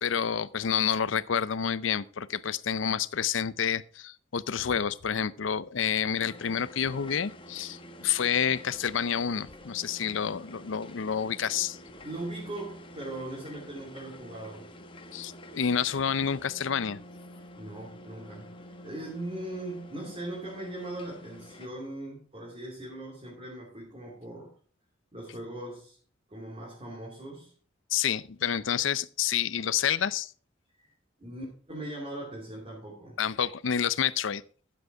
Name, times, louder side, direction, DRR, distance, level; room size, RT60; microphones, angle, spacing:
voice 1, 0.0-11.8 15.1-17.0 27.9-30.3 33.2-34.4, left 8 dB, 85° left, 0.6 m, -29 dB
sound 1, 6.2-21.7, left 1 dB, 25° left, 1.1 m, -48 dB
voice 2, 12.0-14.6 17.4-24.5 25.1-26.0 26.3-27.5 30.8-30.9 31.2-33.2, right 1 dB, 30° right, 2.9 m, -40 dB
11.0 x 7.8 x 4.7 m
head